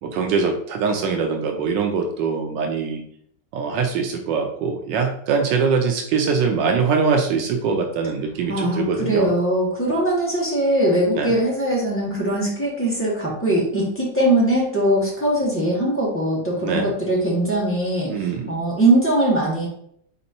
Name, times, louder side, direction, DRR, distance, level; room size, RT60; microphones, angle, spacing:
voice 1, 0.0-3.0 3.5-9.3 11.1-11.4 16.6-16.9 18.1-18.6, right 5 dB, 85° right, 4 dB, 1.3 m, -23 dB
voice 2, 8.5-19.7, right 1 dB, 10° left, -6 dB, 1.3 m, -21 dB
4.2 x 4.1 x 2.7 m, 0.67 s
omnidirectional pair, 1.9 m